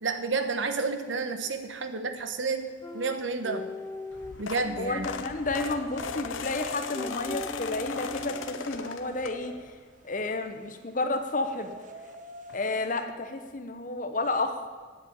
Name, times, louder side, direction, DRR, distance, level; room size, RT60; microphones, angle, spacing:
voice 1, 0.0-3.7 4.4-5.1, right 4 dB, 75° right, 8 dB, 1.1 m, -30 dB
sound 1, 2.6-13.0, right 2 dB, 40° right, 1.0 m, -49 dB
sound 2, 2.8-6.0 6.7-8.9, left 2 dB, 15° left, 0.4 m, -40 dB
sound 3, 4.1-9.7 10.2-10.5 11.7-11.8 12.0-12.1 12.5-12.6, left 6 dB, 85° left, 0.7 m, -38 dB
voice 2, 4.8-9.8 10.0-11.7 12.5-14.7, left 2 dB, 45° left, 7 dB, 1.1 m, -31 dB
9.9 x 7.9 x 8.8 m, 1.5 s
head